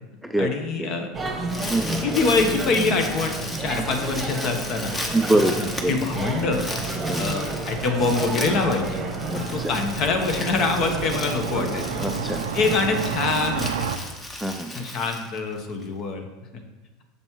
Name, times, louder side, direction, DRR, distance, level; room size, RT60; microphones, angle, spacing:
voice 1, 0.4-1.1 2.0-4.9 5.5-6.7 7.2-9.0 9.3-11.9 12.5-13.9 14.7-16.2, left 3 dB, 50° left, 5 dB, 0.9 m, -25 dB
sound 1, 1.1-13.2, right 2 dB, 15° right, 1.1 m, -31 dB
Crumpling crinkling, 1.2-15.8, left 1 dB, 15° left, 0.9 m, -36 dB
voice 2, 1.7-2.1 5.1-6.0 7.1-7.2 9.3-9.7 12.0-12.4 14.4-14.8, right 1 dB, ahead, 5 dB, 0.4 m, -24 dB
sound 2, 5.7-14.0, right 7 dB, 90° right, 0.4 m, -34 dB
6.8 x 5.3 x 3.0 m, 1.1 s
hypercardioid pair, 105°, 0 cm